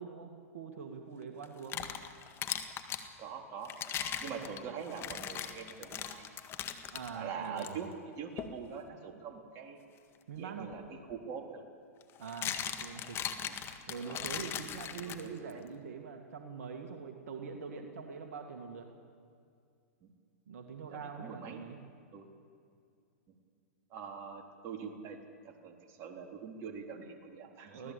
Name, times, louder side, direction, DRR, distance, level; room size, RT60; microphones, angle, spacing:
voice 1, 0.0-1.9 4.3-4.5 6.9-7.8 10.3-10.7 12.2-13.2 13.9-18.9 20.5-21.8 27.7-27.9, right 5 dB, 70° right, 4 dB, 2.2 m, -44 dB
sound 1, 1.4-3.1 3.6-7.1 7.6-7.7 8.4-8.6 10.7-10.8 12.0-15.5, left 9 dB, 30° left, 1.8 m, -39 dB
voice 2, 3.2-3.7 4.2-6.4 7.1-9.8 10.4-10.8 11.1-11.6 13.5-13.6 14.0-14.3 15.1-15.7 20.0-20.1 20.9-21.6 22.1-22.3 23.9-25.2 25.4-27.9, right 6 dB, 35° right, 3 dB, 3.6 m, -44 dB
25.0 x 17.5 x 8.5 m, 2.3 s
hypercardioid pair, 115°, 8 cm